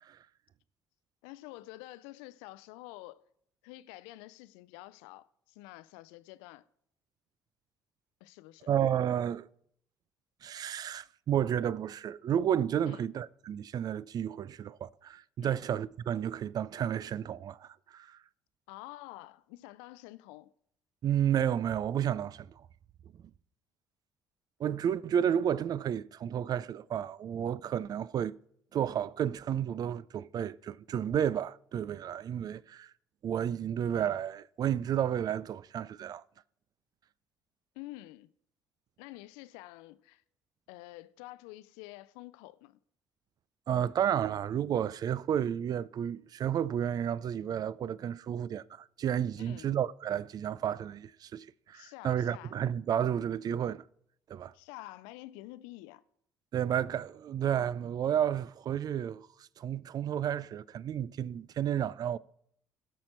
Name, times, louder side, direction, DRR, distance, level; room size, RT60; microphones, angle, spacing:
voice 1, 1.2-3.2 3.6-6.6 8.2-8.7 12.8-13.0 15.4-15.6 18.7-20.5 37.7-38.3 39.0-40.2 40.7-42.8 49.4-49.7 51.7-52.6 54.5-56.0, left 18 dB, 70° left, 0.5 m, -48 dB
voice 2, 8.7-9.5 10.4-18.2 21.0-22.6 24.6-28.3 28.7-32.9 33.2-36.2 43.7-53.8 54.3-54.5 56.5-59.3 59.6-62.2, right 9 dB, 45° right, 0.4 m, -31 dB
16.5 x 6.4 x 4.4 m
hypercardioid pair, 50°, 9 cm